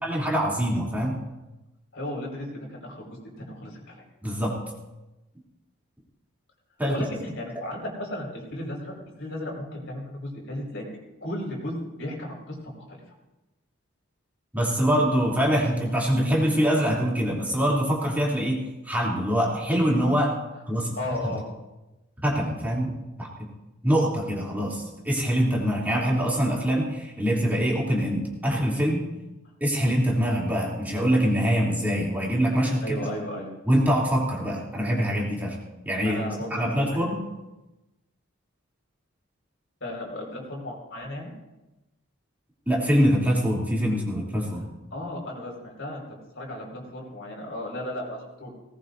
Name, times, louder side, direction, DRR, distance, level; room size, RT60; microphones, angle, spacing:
voice 1, 0.0-1.2 4.2-4.6 6.8-7.0 14.5-20.3 20.7-20.9 22.2-23.5 23.8-29.1 29.6-33.0 33.6-35.6 35.8-36.2 36.5-37.2 42.7-44.6, equal, 10° right, -5 dB, 3.1 m, -24 dB
voice 2, 1.9-3.1 3.4-4.0 6.9-10.9 11.2-13.0 21.0-21.4 32.8-33.5 36.0-37.1 39.8-41.3 44.9-46.0 46.4-48.5, left 1 dB, 60° left, -1 dB, 5.3 m, -35 dB
19.5 x 19.0 x 2.7 m, 1.0 s
head